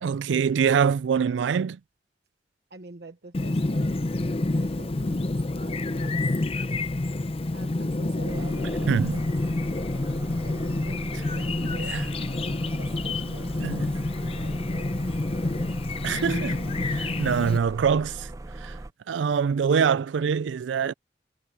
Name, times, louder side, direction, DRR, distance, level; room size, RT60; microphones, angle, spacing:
voice 1, 0.0-1.8 8.9-9.2 11.9-12.0 13.6-13.9 16.0-18.3 18.6-18.7 19.1-20.9, right 6 dB, 85° right, 0.4 m, -24 dB
voice 2, 2.7-4.1 4.5-6.4 6.9-7.1 7.5-9.3 10.4-12.0 12.8-13.9 14.3-14.9, right 2 dB, 60° right, 1.2 m, -46 dB
Chirp tweet, 3.3-17.6, left 2 dB, 30° left, 0.6 m, -28 dB
sound 1, 8.3-18.9, right 2 dB, 20° right, 0.4 m, -40 dB
head